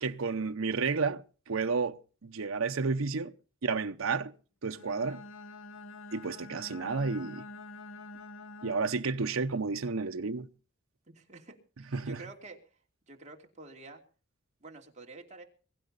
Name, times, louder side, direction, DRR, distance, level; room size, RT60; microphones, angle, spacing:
voice 1, 0.0-3.3 3.6-4.3 4.6-5.2 6.1-7.4 8.6-10.5 11.9-12.2, right 4 dB, 85° right, 0.8 m, -31 dB
Bowed string instrument, 4.7-9.2, left 3 dB, 75° left, 0.9 m, -47 dB
voice 2, 11.1-12.6 13.1-14.0 14.6-15.4, right 3 dB, 35° right, 2.8 m, -49 dB
22.5 x 11.5 x 4.0 m
head